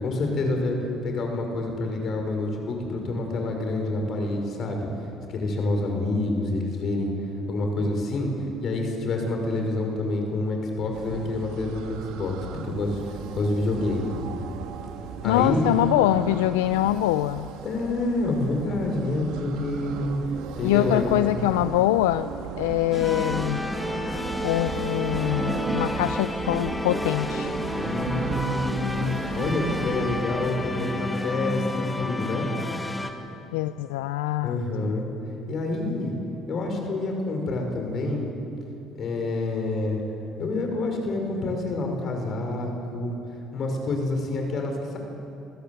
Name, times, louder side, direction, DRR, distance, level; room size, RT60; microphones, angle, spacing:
voice 1, 0.0-0.8 1.0-4.9 5.3-7.1 7.5-8.3 8.6-11.8 12.1-13.0 13.3-14.2 15.2-15.6 17.6-20.1 20.5-21.1 27.8-29.1 29.4-32.5 34.4-35.1 35.5-36.1 36.5-38.3 39.0-40.0 40.4-43.1 43.5-45.0, left 2 dB, 55° left, 3 dB, 5.7 m, -27 dB
sound 1, 10.9-30.2, right 7 dB, 75° right, 1.6 m, -37 dB
voice 2, 15.2-17.5 20.6-22.3 22.6-23.7 24.4-27.5 33.5-34.9, left 14 dB, 85° left, 13 dB, 0.4 m, -24 dB
sound 2, 22.9-33.1, left 1 dB, 10° left, 2.3 m, -30 dB
26.5 x 15.5 x 8.0 m, 2.9 s
hypercardioid pair, 65°, 0 cm